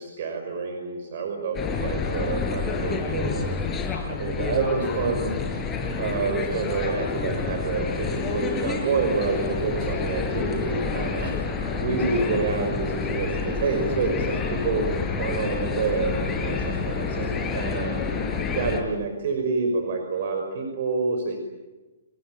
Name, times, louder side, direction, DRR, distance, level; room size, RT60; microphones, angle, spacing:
voice 1, 0.0-3.6 4.1-5.3 5.9-11.3 11.8-14.4 14.6-14.9 15.2-18.0 18.4-21.4, right 4 dB, 55° right, 5 dB, 5.6 m, -28 dB
sound 1, 1.5-18.8, left 4 dB, 20° left, 5.1 m, -28 dB
29.5 x 21.0 x 8.9 m, 1.1 s
hypercardioid pair, 125°, 0 cm